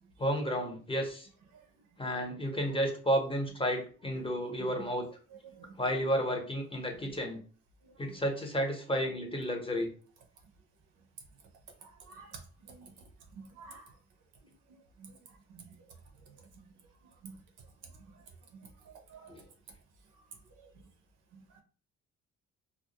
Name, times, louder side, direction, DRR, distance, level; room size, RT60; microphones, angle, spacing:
voice 1, 0.2-1.3 2.0-5.0 5.8-7.4 8.0-9.9 19.3-19.4, equal, 20° left, 2 dB, 0.7 m, -32 dB
voice 2, 5.4-5.7 8.0-8.2 11.8-12.4 12.7-12.9 13.3-13.9 15.0-15.1 15.5-15.7 17.2-17.4 18.5-18.7 19.1-19.3 21.3-21.6, right 5 dB, 85° right, 4 dB, 0.7 m, -50 dB
2.3 x 2.0 x 2.8 m, 0.40 s
cardioid pair, 90°, 30 cm